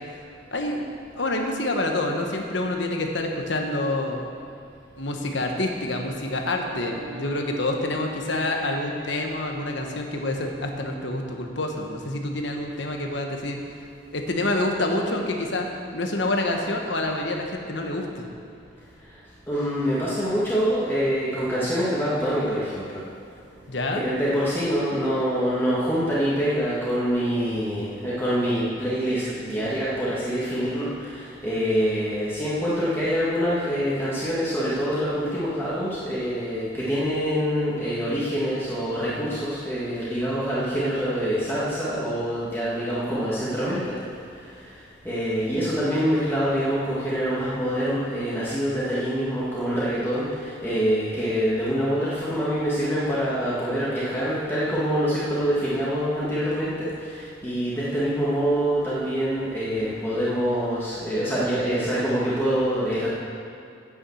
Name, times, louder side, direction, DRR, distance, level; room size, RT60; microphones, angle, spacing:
voice 1, 0.5-0.8 1.2-4.2 5.0-13.6 14.1-15.7 15.9-18.3 23.7-24.0, left 2 dB, 65° left, 2 dB, 1.2 m, -27 dB
Wind instrument woodwind instrument, 6.3-11.1, right 1 dB, 60° right, 1.6 m, -42 dB
voice 2, 19.5-23.0 24.0-43.9 44.3-63.1, equal, 10° left, -9 dB, 1.5 m, -25 dB
8.7 x 7.0 x 7.7 m, 2.5 s
head